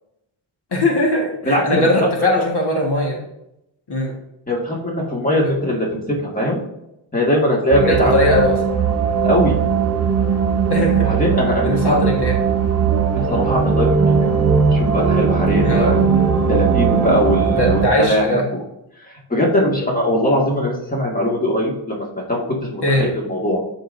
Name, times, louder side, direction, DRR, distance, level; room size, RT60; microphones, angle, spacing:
voice 1, 0.7-3.2 3.9-4.1 7.8-8.6 10.7-11.1 11.6-12.4 15.6-16.2 17.5-18.4 22.8-23.1, left 1 dB, 50° left, -1 dB, 1.8 m, -19 dB
voice 2, 1.4-2.1 4.5-6.0 6.3-6.6 7.1-8.2 9.2-9.6 11.0-12.1 13.1-14.3 14.7-16.0 16.5-18.6 19.0-22.4 22.7-23.6, left 1 dB, 15° left, -2 dB, 2.1 m, -20 dB
sound 1, 7.7-17.9, right 6 dB, 30° right, 0.8 m, -18 dB
12.5 x 5.2 x 2.7 m, 0.85 s
wide cardioid pair, 120°, 49 cm